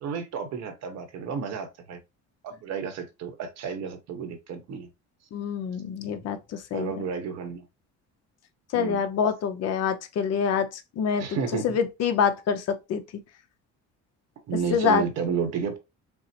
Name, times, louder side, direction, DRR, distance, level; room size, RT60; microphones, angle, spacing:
voice 1, 0.0-2.0 2.4-4.9 6.7-7.6 8.7-9.0 11.2-11.8 14.5-15.8, right 6 dB, 60° right, 1.0 m, -31 dB
voice 2, 5.3-6.9 8.7-11.4 11.6-13.0 14.7-15.0, left 7 dB, 60° left, 0.7 m, -26 dB
5.4 x 2.0 x 2.9 m
cardioid pair, 150°, 30 cm